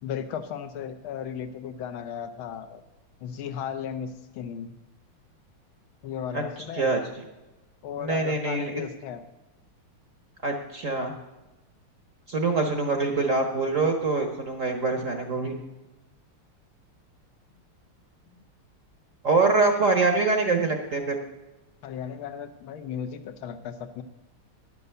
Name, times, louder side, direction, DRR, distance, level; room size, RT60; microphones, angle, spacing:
voice 1, 0.0-2.8 3.2-4.7 6.0-6.9 7.8-9.2 18.3-18.4 21.8-24.0, left 8 dB, 75° left, 8 dB, 1.6 m, -35 dB
voice 2, 8.0-8.8 10.4-11.1 12.3-15.5 19.2-21.2, right 3 dB, 50° right, 5 dB, 1.0 m, -24 dB
11.0 x 6.7 x 6.7 m, 1.0 s
omnidirectional pair, 2.4 m